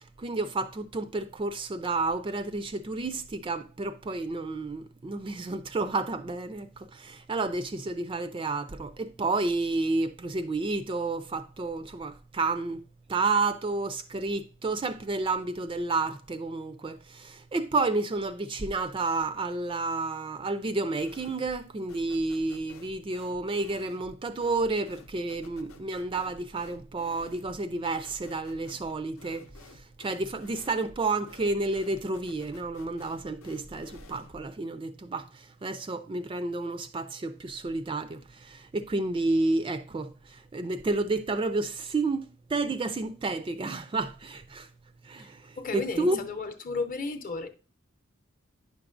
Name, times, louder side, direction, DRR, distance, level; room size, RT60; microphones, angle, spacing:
voice 1, 0.0-12.8 13.1-29.4 29.7-44.7 45.0-46.2, right 3 dB, 25° right, 0.3 m, -31 dB
sound 1, 21.0-21.6 21.9-34.5, left 2 dB, 85° left, 0.7 m, -52 dB
voice 2, 45.6-47.5, left 4 dB, 40° left, 0.7 m, -33 dB
9.4 x 5.9 x 2.5 m
head